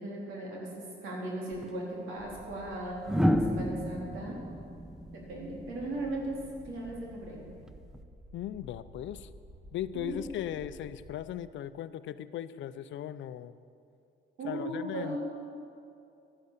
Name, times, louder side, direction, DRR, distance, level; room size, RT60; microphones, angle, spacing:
voice 1, 0.0-4.4 5.1-6.4 6.6-7.4 9.9-10.2 14.4-15.2, right 1 dB, 90° right, -3 dB, 3.5 m, -37 dB
sound 1, 1.5-1.7 3.0-6.1 7.7-8.0, equal, 5° right, 0.7 m, -30 dB
sound 2, 2.1-11.1, right 1 dB, 35° right, 3.9 m, -52 dB
voice 2, 8.3-9.3 9.7-13.5 14.4-15.2, left 11 dB, 70° left, 14 dB, 0.5 m, -38 dB
12.5 x 10.5 x 6.7 m, 2.5 s
cardioid pair, 90°, 20 cm